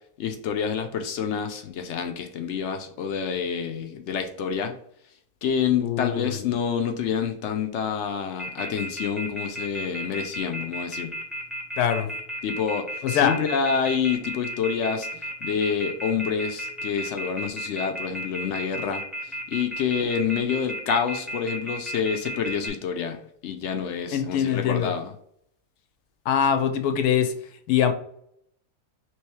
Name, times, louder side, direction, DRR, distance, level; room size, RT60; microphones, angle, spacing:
voice 1, 0.2-4.7 5.4-11.1 12.4-12.8 13.1-25.1, left 7 dB, 70° left, 0.7 m, -28 dB
voice 2, 5.8-6.4 11.8-12.1 13.0-13.4 24.1-24.9 26.3-27.3 27.7-27.9, left 8 dB, 85° left, 1.1 m, -23 dB
Telephone, 8.4-22.7, equal, ahead, 0.4 m, -33 dB
3.1 x 3.1 x 4.5 m
omnidirectional pair, 1.6 m